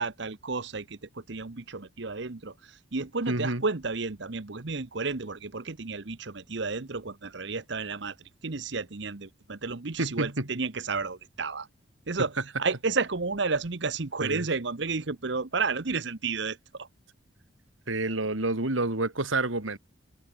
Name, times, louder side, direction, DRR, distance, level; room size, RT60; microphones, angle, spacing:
voice 1, 0.0-11.7 12.1-12.3 12.6-16.9, right 4 dB, 60° right, 1.0 m, -32 dB
voice 2, 3.3-3.6 10.0-10.5 14.2-14.5 17.9-19.8, right 2 dB, 85° right, 2.9 m, -28 dB
head